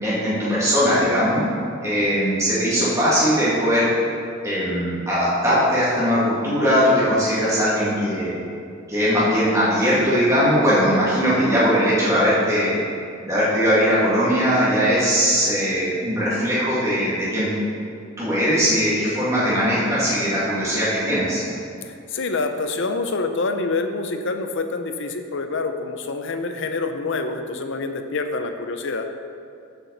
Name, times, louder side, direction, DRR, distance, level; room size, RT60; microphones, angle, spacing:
voice 1, 0.0-1.4 1.8-3.9 4.4-8.4 8.9-12.7 13.3-17.5 18.2-21.4, equal, 15° right, -10 dB, 2.3 m, -20 dB
voice 2, 21.8-29.1, left 3 dB, 60° left, 6 dB, 0.7 m, -26 dB
13.5 x 6.0 x 4.1 m, 2.5 s
head